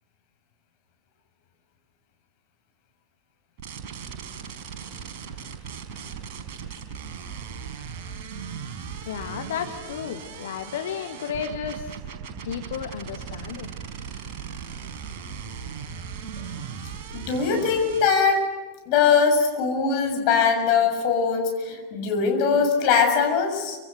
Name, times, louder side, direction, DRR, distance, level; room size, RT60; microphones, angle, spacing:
sound 1, 3.6-18.1, right 6 dB, 45° right, 4.7 m, -37 dB
voice 1, 9.1-12.0 12.4-13.7, left 8 dB, 60° left, 6 dB, 1.7 m, -33 dB
voice 2, 17.1-18.4 18.9-23.8, left 6 dB, 45° left, 3 dB, 7.1 m, -21 dB
28.0 x 26.5 x 8.0 m, 1.2 s
figure-of-eight pair, 90°, 0 cm